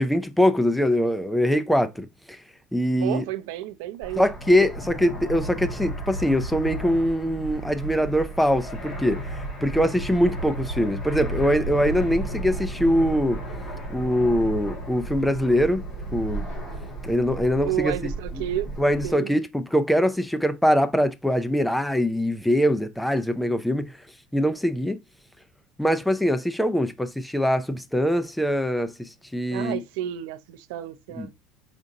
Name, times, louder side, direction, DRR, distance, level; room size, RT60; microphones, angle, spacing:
voice 1, 0.0-2.4 2.7-3.2 4.2-9.2 9.6-13.4 13.9-15.8 16.1-16.4 17.0-17.9 18.8-23.9 24.3-25.0 25.8-29.8 31.2-31.3, equal, ahead, 0.4 m, -23 dB
voice 2, 3.0-4.2 17.6-18.7 19.0-19.4 29.5-31.3, right 12 dB, 80° right, 0.5 m, -31 dB
Fixed-wing aircraft airplane, 4.0-19.1, right 2 dB, 20° left, 2.0 m, -33 dB
5.1 x 3.7 x 2.7 m
cardioid pair, 170°, 0 cm